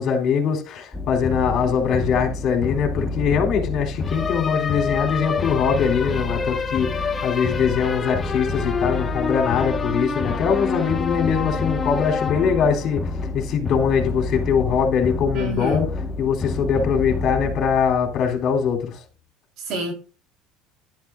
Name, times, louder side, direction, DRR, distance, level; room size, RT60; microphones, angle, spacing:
voice 1, 0.0-13.0 13.3-15.9 16.2-19.0, left 7 dB, 45° left, 3.9 m, -22 dB
sound 1, 0.9-18.5, left 3 dB, 20° left, 1.4 m, -27 dB
voice 2, 15.3-15.9 19.7-19.9, right 2 dB, 55° right, 4.1 m, -28 dB
11.0 x 11.0 x 2.6 m
cardioid pair, 130°, 0 cm